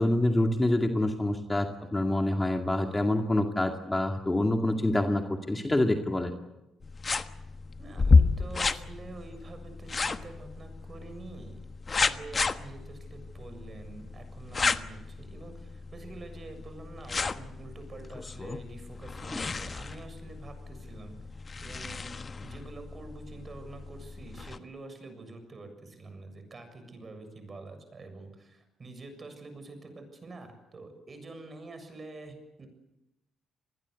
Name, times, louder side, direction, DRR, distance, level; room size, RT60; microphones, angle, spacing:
voice 1, 0.0-6.3 19.3-19.5, left 1 dB, 15° left, 4 dB, 2.2 m, -26 dB
sound 1, 6.8-24.6, left 4 dB, 35° left, 1.3 m, -31 dB
voice 2, 7.8-11.6 12.0-21.2 21.6-32.7, right 2 dB, 35° right, 8 dB, 7.1 m, -46 dB
27.5 x 20.5 x 8.3 m, 0.96 s
cardioid pair, 90°, 0 cm